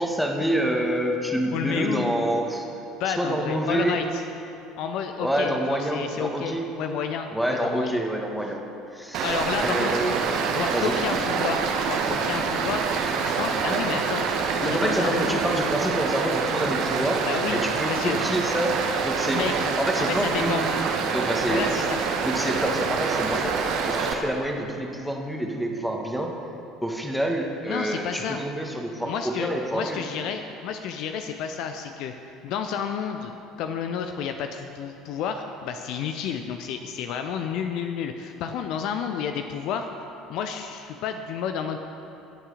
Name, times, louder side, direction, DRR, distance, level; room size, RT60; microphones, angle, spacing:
voice 1, 0.0-2.7 3.1-4.0 5.2-6.7 7.3-8.6 8.9-10.2 10.7-11.0 14.6-17.2 17.5-18.8 19.0-19.4 19.8-20.7 21.1-21.9 22.2-26.3 26.8-30.0, right 1 dB, ahead, 1 dB, 1.7 m, -27 dB
voice 2, 1.5-2.1 3.0-4.2 4.8-8.0 9.2-9.9 10.5-12.9 13.2-14.3 14.6-15.4 17.3-17.6 17.9-18.2 19.3-19.7 20.1-20.6 21.5-22.0 27.6-28.4 29.0-33.3 33.6-39.9 40.3-41.8, left 7 dB, 55° left, 6 dB, 0.6 m, -31 dB
Stream, 9.1-24.1, right 5 dB, 55° right, 1.2 m, -26 dB
18.0 x 7.4 x 5.0 m, 2.8 s
figure-of-eight pair, 60°, 0 cm